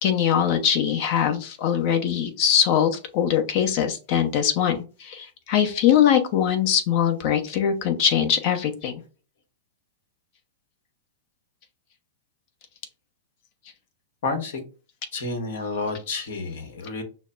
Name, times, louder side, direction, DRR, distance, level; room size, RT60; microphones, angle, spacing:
voice 1, 0.0-8.9, left 9 dB, 50° left, 7 dB, 0.9 m, -22 dB
voice 2, 14.2-14.6 15.1-17.0, left 3 dB, 65° left, 6 dB, 1.3 m, -30 dB
6.2 x 2.1 x 2.5 m, 0.34 s
hypercardioid pair, 105°, 0 cm